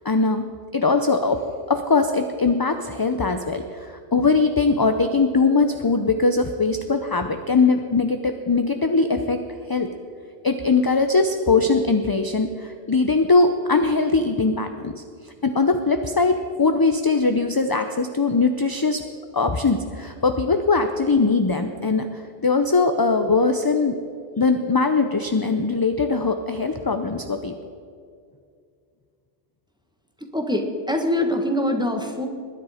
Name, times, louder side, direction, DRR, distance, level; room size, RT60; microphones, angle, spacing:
voice 1, 0.0-9.4 9.7-9.9 10.4-19.0 19.3-24.0 24.4-27.6, left 4 dB, 30° left, 7 dB, 0.5 m, -21 dB
voice 2, 30.2-32.3, left 1 dB, 5° right, 3 dB, 1.4 m, -24 dB
20.0 x 10.0 x 5.0 m, 2.3 s
omnidirectional pair, 1.1 m